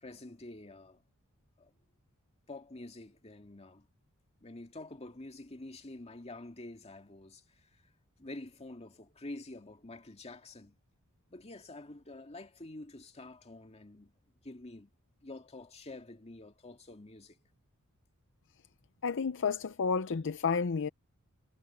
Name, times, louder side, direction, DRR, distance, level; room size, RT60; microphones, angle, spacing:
voice 1, 0.0-1.0 1.6-1.7 2.5-3.8 4.4-7.4 8.2-10.7 11.3-14.1 14.4-14.9 15.2-17.4, left 2 dB, 30° left, 2.1 m, -47 dB
voice 2, 19.0-20.9, left 5 dB, 60° left, 0.6 m, -31 dB
head